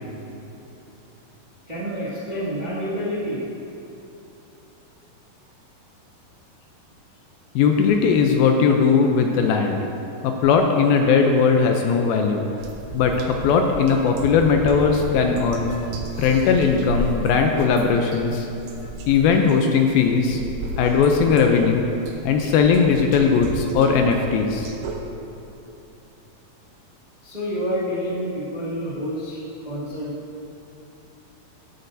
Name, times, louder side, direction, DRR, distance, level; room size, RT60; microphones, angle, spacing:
voice 1, 1.7-3.4 27.2-29.4 29.6-30.1, equal, 30° right, -9 dB, 0.7 m, -28 dB
voice 2, 7.6-9.8 10.2-12.5 12.9-18.5 19.1-20.4 20.8-21.9 22.2-24.7, left 5 dB, 80° left, 3 dB, 2.3 m, -19 dB
sound 1, 12.6-25.0, right 1 dB, 80° right, 2.9 m, -34 dB
16.5 x 8.4 x 2.7 m, 2.9 s
omnidirectional pair, 4.5 m